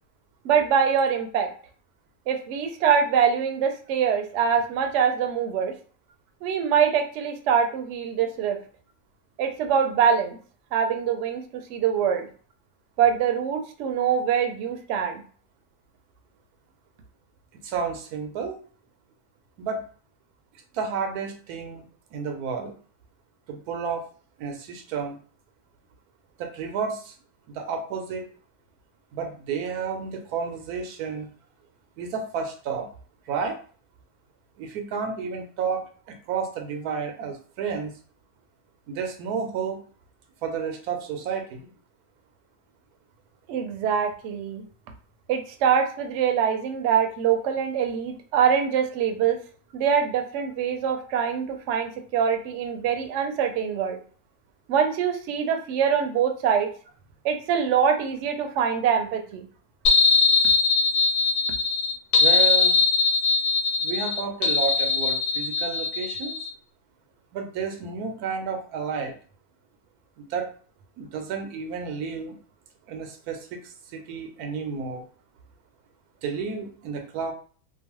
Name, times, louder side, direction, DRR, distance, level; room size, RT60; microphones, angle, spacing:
voice 1, 0.4-1.5 2.3-5.7 6.4-8.6 9.4-10.4 10.7-12.3 13.0-15.2 43.5-44.6 45.3-49.4 49.7-54.0 54.7-56.7 57.2-59.5, right 7 dB, 65° right, 5 dB, 0.8 m, -24 dB
voice 2, 17.5-18.6 19.6-19.9 20.7-22.8 23.5-24.1 24.4-25.2 26.4-27.2 27.5-28.3 29.1-31.3 32.0-32.9 33.3-33.6 34.6-38.0 38.9-39.8 40.4-41.7 62.2-62.8 63.8-66.4 67.3-69.1 70.2-70.5 71.0-72.4 72.9-75.1 76.2-77.3, right 6 dB, 90° right, 6 dB, 1.1 m, -31 dB
sound 1, 59.8-66.5, left 4 dB, 60° left, 0.6 m, -21 dB
2.9 x 2.0 x 2.9 m, 0.41 s
omnidirectional pair, 1.6 m